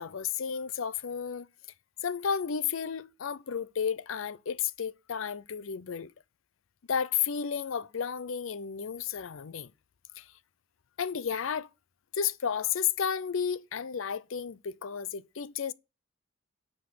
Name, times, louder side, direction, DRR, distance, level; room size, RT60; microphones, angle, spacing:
voice 1, 0.0-1.5 2.0-6.1 6.9-9.7 10.2-10.3 11.0-11.7 12.1-15.7, left 7 dB, 75° left, 0.5 m, -32 dB
9.7 x 5.4 x 6.8 m
head